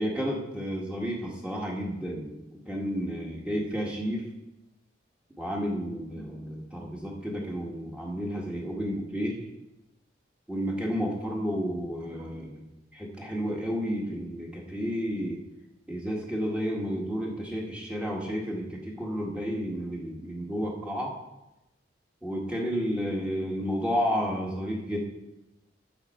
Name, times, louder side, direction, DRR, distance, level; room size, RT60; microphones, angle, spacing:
voice 1, 0.0-4.2 5.4-9.5 10.5-12.7 12.9-15.4 15.9-21.1 22.2-25.0, equal, 5° right, -2 dB, 1.8 m, -31 dB
12.0 x 7.8 x 4.5 m, 0.95 s
head